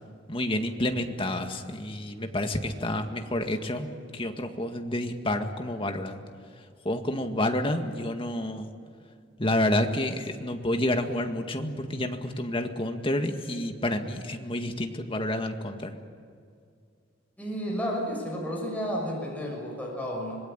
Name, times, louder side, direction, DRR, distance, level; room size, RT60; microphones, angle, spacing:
voice 1, 0.3-3.9 4.1-6.2 6.8-8.7 9.4-15.9, left 1 dB, 30° left, 5 dB, 1.9 m, -29 dB
voice 2, 17.4-20.4, equal, 10° left, -2 dB, 6.4 m, -32 dB
25.5 x 21.0 x 8.9 m, 2.2 s
head